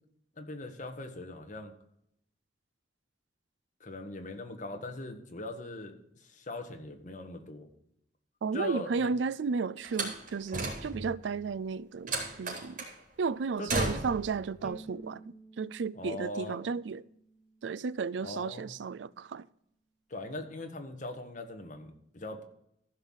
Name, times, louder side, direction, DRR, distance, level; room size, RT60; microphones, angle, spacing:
voice 1, 0.4-1.7 3.8-5.9 6.2-7.7 8.5-9.1 13.6-14.1 15.9-16.6 18.2-18.7 20.1-22.4, left 2 dB, 45° left, 1.6 m, -40 dB
voice 2, 8.4-12.8 13.2-17.0 17.6-19.5, right 5 dB, 85° right, 0.4 m, -33 dB
Slam, 9.8-11.2 12.1-13.0 13.7-14.3, right 2 dB, 50° right, 3.9 m, -34 dB
Bowed string instrument, 14.6-17.9, right 1 dB, ahead, 1.5 m, -52 dB
14.5 x 5.7 x 6.4 m
head